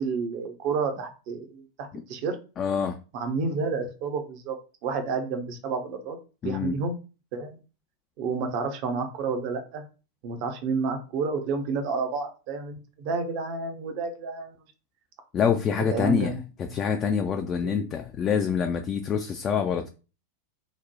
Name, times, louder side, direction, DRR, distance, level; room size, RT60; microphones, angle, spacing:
voice 1, 0.0-2.4 3.1-4.6 4.8-6.2 6.4-7.0 7.3-7.6 8.2-9.8 10.2-14.5 15.9-16.4 16.7-16.8 17.6-17.9, right 4 dB, 45° right, 0.6 m, -30 dB
voice 2, 2.6-3.0 6.4-6.7 15.3-19.9, left 7 dB, 25° left, 0.3 m, -26 dB
3.0 x 2.1 x 4.0 m
figure-of-eight pair, 90°, 0 cm